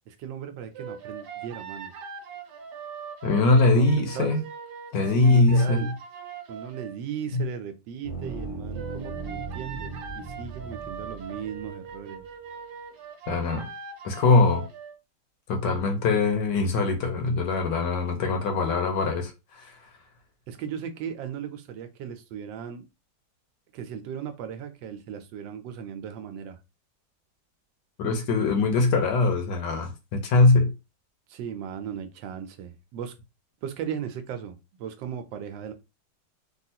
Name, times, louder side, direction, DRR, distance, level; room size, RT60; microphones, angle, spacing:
voice 1, 0.1-1.9 3.8-4.4 5.1-5.9 6.5-12.2 20.5-22.8 23.7-26.6 31.3-33.1 33.6-35.7, right 8 dB, 90° right, 1.3 m, -37 dB
sound 1, 0.7-6.9 8.7-14.9, right 6 dB, 70° right, 1.3 m, -41 dB
voice 2, 3.2-4.4 4.9-5.9 7.3-7.4 13.3-13.7 14.0-14.6 15.5-19.7 28.0-30.7, left 3 dB, 75° left, 1.4 m, -22 dB
sound 2, 8.0-11.9, right 3 dB, 60° left, 0.6 m, -37 dB
3.5 x 2.4 x 2.7 m
omnidirectional pair, 1.9 m